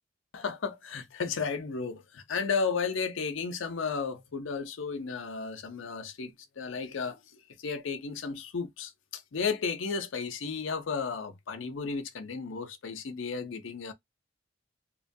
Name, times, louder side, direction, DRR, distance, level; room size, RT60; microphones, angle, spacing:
voice 1, 0.3-13.9, left 5 dB, 75° left, 0.6 m, -34 dB
2.9 x 2.2 x 2.6 m
head